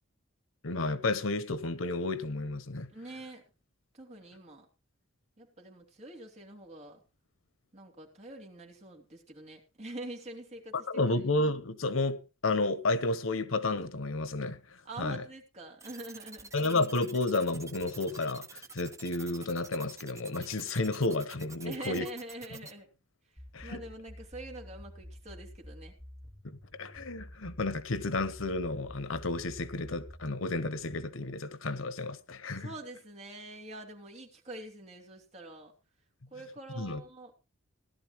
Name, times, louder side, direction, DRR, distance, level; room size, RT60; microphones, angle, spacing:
voice 1, 0.6-2.9 10.7-15.2 16.5-22.1 23.5-23.8 26.4-32.7 36.7-37.0, left 2 dB, 90° left, 1.1 m, -32 dB
voice 2, 2.9-3.4 3.9-4.6 5.4-7.0 7.7-10.7 11.0-11.1 14.8-16.5 21.6-22.9 23.6-25.9 32.6-35.7 36.3-37.3, right 2 dB, 35° right, 3.1 m, -45 dB
sound 1, 15.8-22.7, right 4 dB, 15° right, 1.0 m, -48 dB
sound 2, 23.4-31.0, equal, 5° left, 2.0 m, -49 dB
17.5 x 11.5 x 3.1 m
head